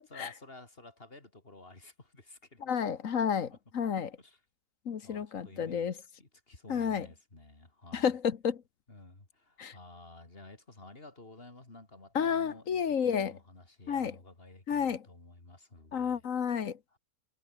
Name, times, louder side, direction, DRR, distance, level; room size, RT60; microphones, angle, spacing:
voice 1, 0.0-2.9 3.3-4.4 5.0-5.9 6.2-8.1 8.9-16.2 16.9-17.0, left 2 dB, 35° left, 4.1 m, -53 dB
voice 2, 2.6-3.5 3.7-4.1 4.8-5.9 6.7-7.1 7.9-8.6 9.6-9.7 12.1-13.4 13.9-14.2 14.7-15.0 15.9-16.8, left 7 dB, 55° left, 1.5 m, -31 dB
omnidirectional pair, 1.7 m